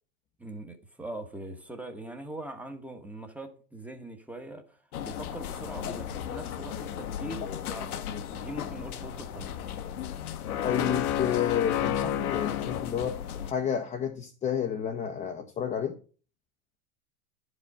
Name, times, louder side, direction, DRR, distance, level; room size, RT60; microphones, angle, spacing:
voice 1, 0.4-7.9 8.3-9.5, right 1 dB, 5° right, 1.0 m, -42 dB
sound 1, 4.9-13.5, left 10 dB, 85° left, 1.1 m, -33 dB
voice 2, 10.6-13.2 13.4-16.0, left 8 dB, 15° left, 0.6 m, -30 dB
11.5 x 5.1 x 5.4 m
supercardioid pair, 135°, 43 cm